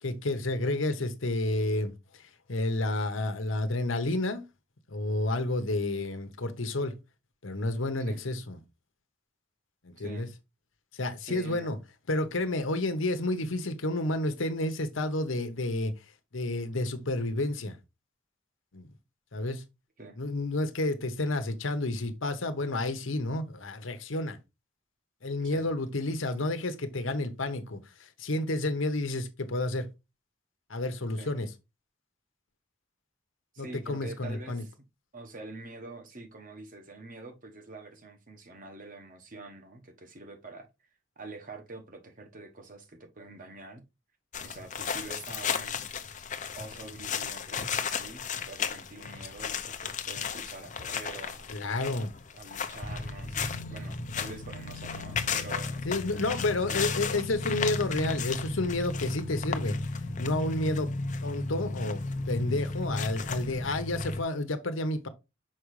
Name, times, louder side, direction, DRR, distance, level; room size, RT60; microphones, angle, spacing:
voice 1, 0.0-4.5 4.9-6.9 7.4-8.6 9.8-10.3 10.9-11.8 12.1-15.9 16.3-17.8 18.7-18.9 19.3-19.6 20.2-24.4 25.2-29.9 30.7-31.5 33.6-34.6 51.5-52.1 55.8-59.8 60.2-60.9 61.2-65.1, left 2 dB, 85° left, 1.0 m, -30 dB
voice 2, 10.0-10.3 11.2-11.7 20.0-20.2 25.5-25.7 31.2-31.3 33.5-34.7 35.1-40.7 41.2-43.8 44.4-45.9 46.5-51.5 51.9-52.1 52.3-55.8 56.7-56.8, right 3 dB, 45° right, 1.1 m, -46 dB
sound 1, 44.3-64.2, left 5 dB, 40° left, 0.6 m, -34 dB
6.2 x 5.0 x 3.2 m
head